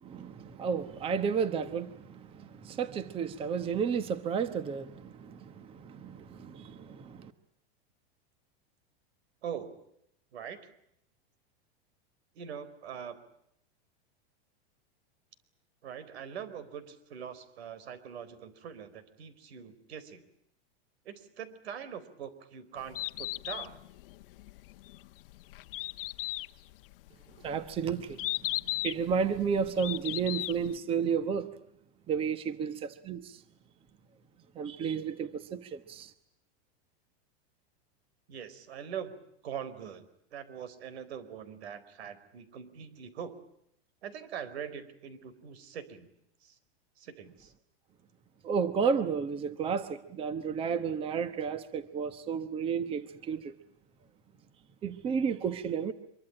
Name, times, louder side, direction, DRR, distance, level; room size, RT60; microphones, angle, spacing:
voice 1, 0.0-7.3 27.4-28.3 28.8-31.5 32.1-33.4 34.5-36.1 48.4-53.6 54.8-55.9, right 6 dB, 15° right, 1.1 m, -32 dB
voice 2, 12.3-13.2 15.8-20.3 21.0-23.8 38.3-39.2 39.4-40.1 40.3-43.3 44.0-46.1 46.4-46.6 47.0-47.5, right 8 dB, 85° right, 4.5 m, -42 dB
Bird, 22.8-30.8, left 18 dB, 60° left, 1.0 m, -37 dB
25.0 x 23.5 x 8.7 m
supercardioid pair, 165°, 31 cm